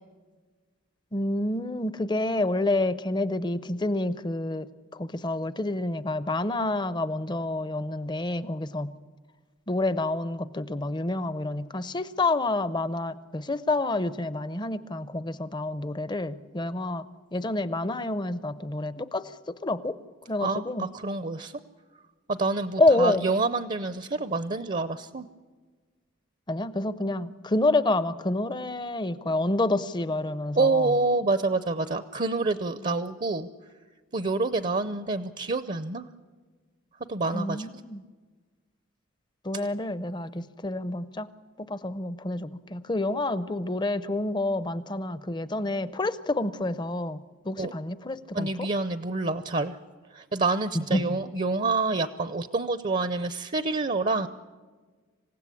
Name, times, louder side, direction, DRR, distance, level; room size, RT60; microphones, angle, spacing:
voice 1, 1.1-4.7 4.9-8.9 9.7-17.1 17.3-19.3 19.6-20.0 20.3-20.9 22.8-23.2 26.5-30.9 37.3-38.0 39.4-41.3 41.6-47.2 47.4-48.5 50.9-51.0, left 2 dB, 20° left, 15 dB, 0.6 m, -28 dB
voice 2, 20.4-21.5 22.3-25.3 30.6-33.5 34.1-36.1 37.1-37.7 47.6-47.7 48.3-49.8 50.1-54.3, right 3 dB, 35° right, 12 dB, 0.6 m, -27 dB
26.5 x 16.5 x 8.4 m, 1.4 s
head